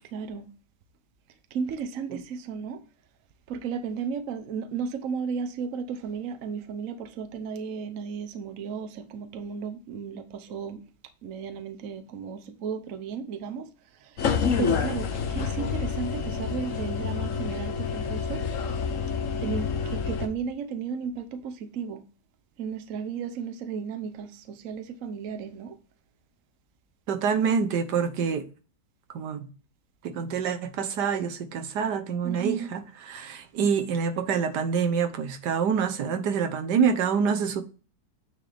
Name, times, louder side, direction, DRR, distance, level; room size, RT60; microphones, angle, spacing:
voice 1, 0.1-0.5 1.5-2.8 3.5-10.8 11.2-13.7 14.0-14.1 14.6-18.4 19.4-22.0 22.6-25.8 32.2-32.7, right 6 dB, 60° right, 1.1 m, -34 dB
sound 1, 14.2-20.3, left 6 dB, 55° left, 1.2 m, -28 dB
voice 2, 27.1-28.4 29.1-29.5 30.0-32.8 33.1-37.6, right 6 dB, 90° right, 1.6 m, -26 dB
9.3 x 4.6 x 3.4 m
omnidirectional pair, 1.7 m